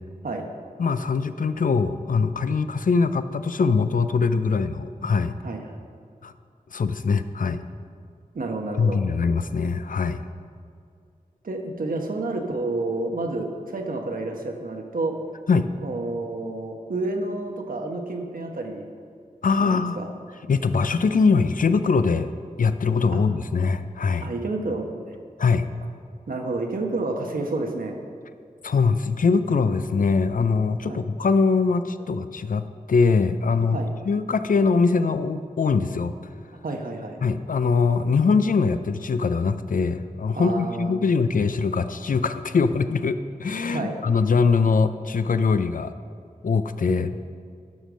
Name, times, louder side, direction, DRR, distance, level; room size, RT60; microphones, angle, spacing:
voice 1, 0.8-5.3 6.2-6.3 6.7-7.6 8.8-10.2 15.5-15.7 19.4-20.0 20.5-22.3 22.6-24.3 25.4-25.7 28.6-33.8 34.0-36.1 37.2-45.9 46.4-47.4, left 4 dB, 70° left, 11 dB, 0.5 m, -22 dB
voice 2, 8.3-9.0 11.4-15.2 15.8-18.9 19.6-20.1 23.1-23.2 24.2-25.0 26.3-28.0 30.9-31.1 33.7-33.9 36.6-37.2 40.3-41.0 43.6-44.0, right 2 dB, 80° right, 2 dB, 1.2 m, -29 dB
11.5 x 5.3 x 6.2 m, 2.3 s
wide cardioid pair, 60°, 14 cm